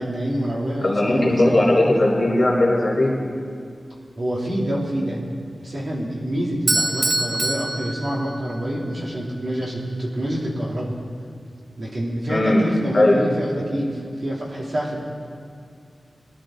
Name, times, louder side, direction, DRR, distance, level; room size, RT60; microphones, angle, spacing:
voice 1, 0.0-1.5 4.2-5.2 5.5-10.9 11.8-15.0, equal, 65° right, -4 dB, 3.0 m, -27 dB
voice 2, 0.8-3.2 12.3-12.6 12.9-13.2, left 1 dB, 45° left, -2 dB, 3.6 m, -18 dB
Bell / Doorbell, 6.7-8.8, right 2 dB, 35° right, 0.6 m, -24 dB
20.5 x 12.0 x 3.9 m, 2.3 s
wide cardioid pair, 70°, 0 cm